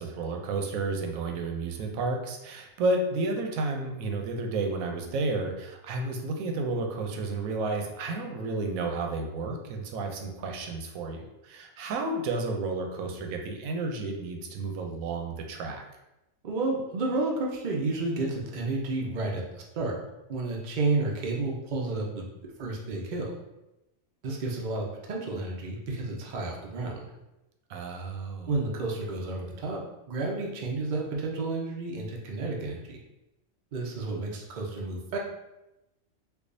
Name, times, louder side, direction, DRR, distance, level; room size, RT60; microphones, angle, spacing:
voice 1, 0.0-15.8 27.7-28.5, right 3 dB, 90° right, 3 dB, 1.0 m, -31 dB
voice 2, 16.4-19.4 19.7-19.9 20.3-22.3 22.6-23.3 24.2-27.1 28.5-29.8 30.1-33.0 33.7-35.2, right 3 dB, 50° right, -1 dB, 0.6 m, -31 dB
4.6 x 2.3 x 2.5 m, 0.94 s
omnidirectional pair, 1.4 m